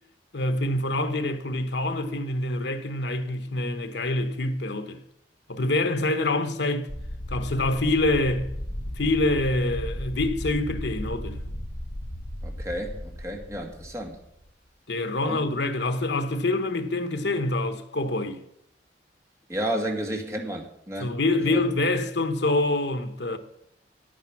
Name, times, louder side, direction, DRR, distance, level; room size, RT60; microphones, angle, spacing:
voice 1, 0.3-5.0 5.5-6.9 7.3-8.5 8.9-11.4 14.9-18.4 21.0-23.4, left 2 dB, 75° left, 1.1 m, -26 dB
sound 1, 6.9-14.5, equal, 40° left, 1.4 m, -35 dB
voice 2, 12.4-14.2 15.2-15.4 19.5-21.6, right 1 dB, 15° right, 1.8 m, -32 dB
10.5 x 9.0 x 6.0 m
head